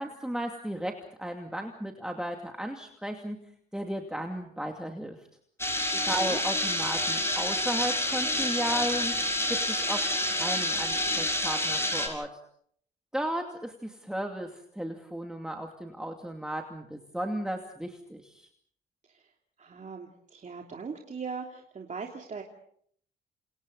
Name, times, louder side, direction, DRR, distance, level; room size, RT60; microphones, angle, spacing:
voice 1, 0.0-3.4 3.7-5.2 6.1-9.1 9.5-12.3 13.1-18.5, right 1 dB, 5° right, 3 dB, 2.6 m, -34 dB
sound 1, 5.6-12.1, left 1 dB, 10° left, 6.9 m, -28 dB
voice 2, 5.9-6.4 19.6-22.4, right 5 dB, 40° right, 1 dB, 3.1 m, -39 dB
30.0 x 28.0 x 4.1 m, 0.62 s
cardioid pair, 90°, 20 cm